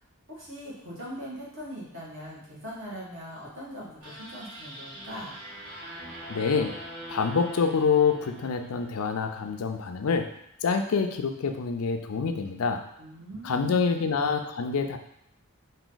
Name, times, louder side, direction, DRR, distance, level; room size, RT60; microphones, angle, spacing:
voice 1, 0.3-5.3 13.0-14.0, equal, 55° right, -6 dB, 1.6 m, -41 dB
sound 1, 4.0-9.3, right 1 dB, 75° right, 1.5 m, -42 dB
voice 2, 6.3-6.8 7.1-10.3 10.6-12.8 13.4-15.0, left 5 dB, 80° left, 6 dB, 0.5 m, -26 dB
4.9 x 2.6 x 3.9 m, 0.74 s
head